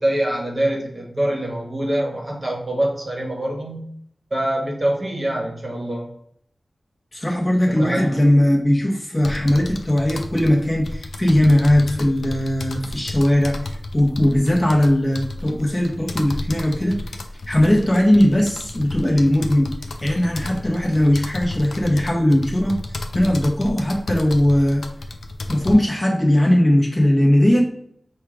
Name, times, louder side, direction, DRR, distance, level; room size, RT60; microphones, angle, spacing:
voice 1, 0.0-3.9 4.3-6.1 7.7-8.3, right 1 dB, 30° right, 0 dB, 1.1 m, -24 dB
voice 2, 7.1-13.6 13.9-17.0 17.5-19.7 20.0-22.8 23.1-24.8 25.5-27.6, left 1 dB, 25° left, -2 dB, 0.9 m, -18 dB
sound 1, 9.2-25.7, left 2 dB, 80° left, 0.5 m, -32 dB
4.5 x 2.4 x 4.8 m, 0.67 s
wide cardioid pair, 105°, 0 cm